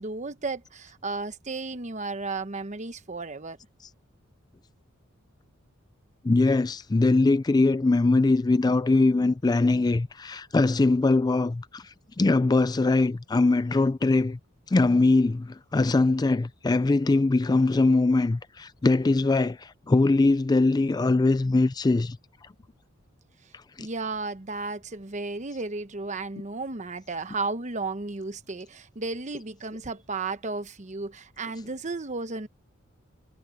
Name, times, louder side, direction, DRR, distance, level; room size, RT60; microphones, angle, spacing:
voice 1, 0.0-3.6 23.8-32.5, right 3 dB, 35° right, 1.0 m, -33 dB
voice 2, 6.2-14.4 14.7-22.2 23.8-23.9, left 3 dB, 20° left, 0.3 m, -22 dB
head